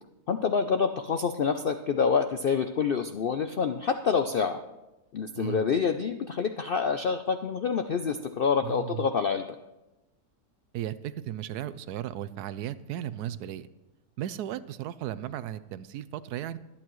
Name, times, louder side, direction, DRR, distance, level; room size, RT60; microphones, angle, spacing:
voice 1, 0.3-4.6 5.1-9.5, left 6 dB, 70° left, 8 dB, 0.5 m, -27 dB
voice 2, 8.6-9.1 10.7-13.7 14.2-16.6, right 11 dB, 85° right, 15 dB, 1.1 m, -35 dB
23.0 x 8.8 x 3.1 m, 0.99 s
omnidirectional pair, 1.6 m